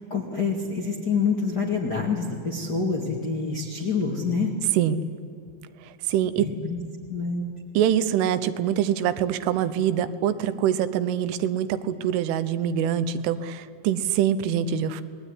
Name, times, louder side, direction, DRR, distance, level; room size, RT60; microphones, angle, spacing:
voice 1, 0.1-4.6 6.4-6.8 7.1-7.4, left 5 dB, 35° left, 0 dB, 1.7 m, -27 dB
voice 2, 5.8-6.5 7.7-15.0, right 9 dB, 80° right, 13 dB, 3.3 m, -24 dB
27.5 x 20.5 x 10.0 m, 2.5 s
omnidirectional pair, 5.6 m